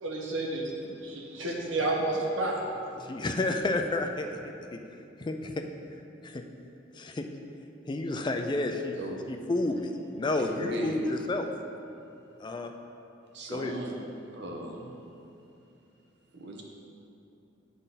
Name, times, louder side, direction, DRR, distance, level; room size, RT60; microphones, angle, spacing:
voice 1, 0.0-0.7 1.0-2.6, right 2 dB, 90° right, 1.2 m, -30 dB
voice 2, 3.0-4.8 5.2-5.6 6.2-6.4 6.9-7.3 7.9-9.0 9.3-11.5 12.4-12.7 13.5-13.7, left 2 dB, 25° left, 0.3 m, -31 dB
voice 3, 10.3-11.1 13.3-13.9 14.3-15.0 16.3-16.6, equal, 65° right, 1.0 m, -37 dB
10.0 x 3.8 x 4.1 m
head